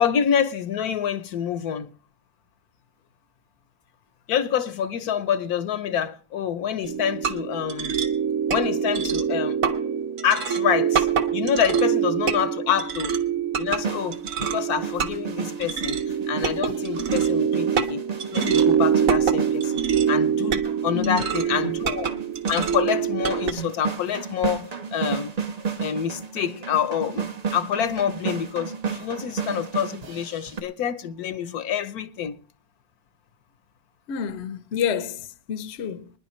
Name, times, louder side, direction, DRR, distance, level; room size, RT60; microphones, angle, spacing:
voice 1, 0.0-1.9 4.3-7.9 8.5-9.6 10.2-11.1 11.3-13.2 13.6-16.0 16.3-18.0 18.3-19.8 20.1-22.1 22.5-25.3 25.8-32.4, left 8 dB, 70° left, 1.2 m, -27 dB
sound 1, 6.8-23.5, right 8 dB, 60° right, 1.4 m, -25 dB
sound 2, 13.7-30.6, right 6 dB, 30° right, 0.8 m, -33 dB
voice 2, 20.9-21.6 34.1-36.1, left 7 dB, 50° left, 0.9 m, -29 dB
24.5 x 10.5 x 3.1 m
omnidirectional pair, 1.7 m